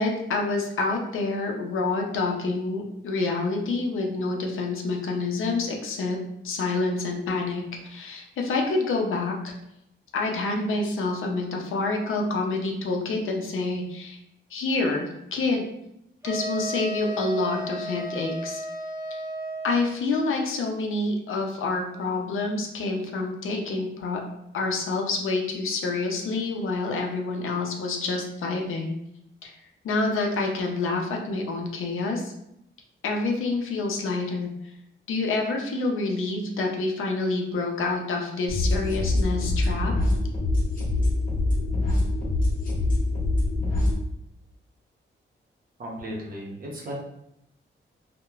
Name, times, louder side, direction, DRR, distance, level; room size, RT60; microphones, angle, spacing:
voice 1, 0.0-6.2 6.4-9.5 10.1-14.2 14.5-15.7 16.2-18.6 19.6-24.2 24.5-29.0 29.4-29.5 29.8-32.3 33.0-34.5 35.1-39.9, left 3 dB, 80° left, 1 dB, 0.5 m, -27 dB
sound 1, 16.2-19.9, right 1 dB, 15° right, 0.4 m, -34 dB
sound 2, 38.5-43.9, left 2 dB, 40° left, 0.9 m, -24 dB
voice 2, 45.8-46.9, equal, 45° right, -2 dB, 0.7 m, -35 dB
2.9 x 2.1 x 2.3 m, 0.80 s
wide cardioid pair, 130°, 21 cm